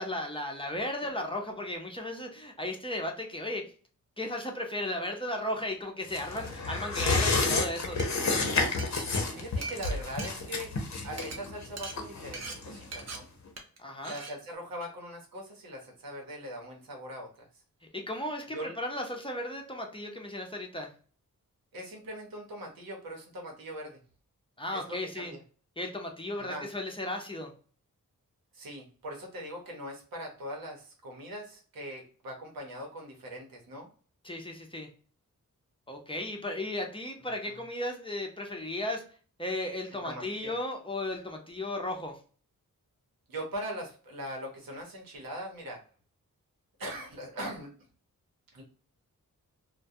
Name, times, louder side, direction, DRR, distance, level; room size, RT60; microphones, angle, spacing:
voice 1, 0.0-3.7 4.2-8.0 13.8-14.1 17.9-20.9 24.6-25.3 25.8-27.5 34.2-34.9 35.9-39.0 39.4-42.2, left 1 dB, 15° left, 2 dB, 0.6 m, -35 dB
sound 1, 6.1-13.1 13.5-13.6, left 3 dB, 55° left, 0.7 m, -30 dB
Glass, 8.0-8.1 8.6-10.8 11.1-11.4 11.8-12.0 12.3-12.6 12.9-13.2 13.6-13.8 14.0-14.3, right 3 dB, 50° right, 0.7 m, -40 dB
voice 2, 9.3-10.7 11.0-13.3 14.0-17.6 18.5-18.8 21.7-24.0 24.7-25.4 26.4-26.7 28.5-33.9 37.5-37.6 40.0-40.5 43.3-45.8 46.8-47.7 48.5-48.6, equal, 90° right, 0 dB, 0.9 m, -41 dB
2.2 x 2.2 x 2.6 m, 0.40 s
cardioid pair, 55°, 34 cm